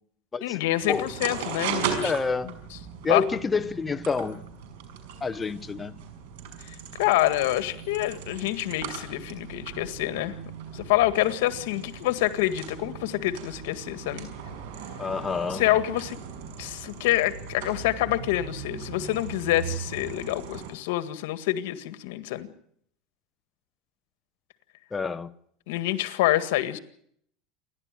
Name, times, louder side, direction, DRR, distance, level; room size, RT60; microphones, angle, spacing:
voice 1, 0.4-2.1 3.1-3.2 7.0-10.4 10.7-14.3 15.5-16.2 16.6-22.5 25.7-26.8, left 15 dB, 80° left, 1.9 m, -26 dB
sound 1, 0.8-20.7, right 7 dB, 90° right, 5.8 m, -38 dB
voice 2, 2.0-2.5 3.0-4.4 5.2-6.0 15.0-15.6 24.9-25.3, left 4 dB, 15° left, 0.8 m, -28 dB
28.5 x 12.0 x 9.1 m
supercardioid pair, 155°, 0 cm